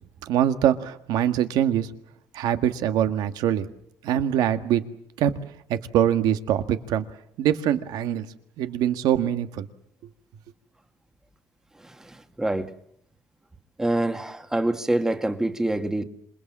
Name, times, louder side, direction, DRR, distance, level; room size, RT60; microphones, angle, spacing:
voice 1, 0.2-1.9 2.3-3.7 4.0-4.8 5.2-5.3 5.7-7.0 7.4-8.3 8.6-9.7, right 10 dB, 75° right, 9 dB, 1.8 m, -23 dB
voice 2, 11.8-12.7 13.8-16.0, right 1 dB, 5° right, 8 dB, 1.6 m, -26 dB
27.0 x 22.0 x 7.5 m, 0.71 s
cardioid pair, 145°, 7 cm